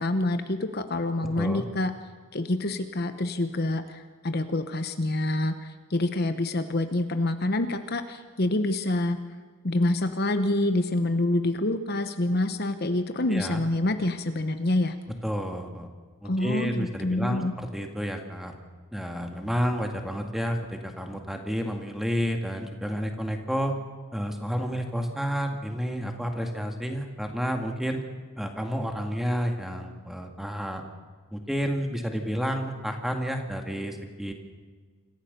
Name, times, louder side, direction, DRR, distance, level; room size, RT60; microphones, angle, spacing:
voice 1, 0.0-1.9 2.3-9.2 9.6-14.9 16.2-17.5, left 1 dB, 50° left, 8 dB, 1.0 m, -27 dB
voice 2, 1.2-1.6 13.3-13.6 15.2-15.9 16.2-18.5 18.9-23.7 24.1-28.0 28.4-30.8 31.3-34.3, equal, ahead, 3 dB, 2.1 m, -30 dB
26.0 x 15.0 x 6.8 m, 1.5 s
head